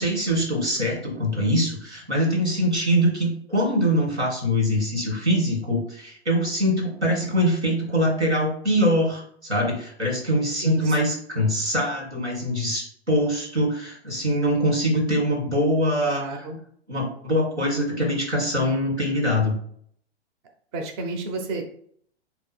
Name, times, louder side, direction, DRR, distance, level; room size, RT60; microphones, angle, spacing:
voice 1, 0.0-16.2 16.9-19.6, equal, 85° right, 1 dB, 1.8 m, -23 dB
voice 2, 10.6-11.0 16.0-16.6 20.7-21.6, right 3 dB, 25° right, 4 dB, 0.5 m, -31 dB
3.8 x 2.8 x 4.2 m, 0.62 s
figure-of-eight pair, 110°, 33 cm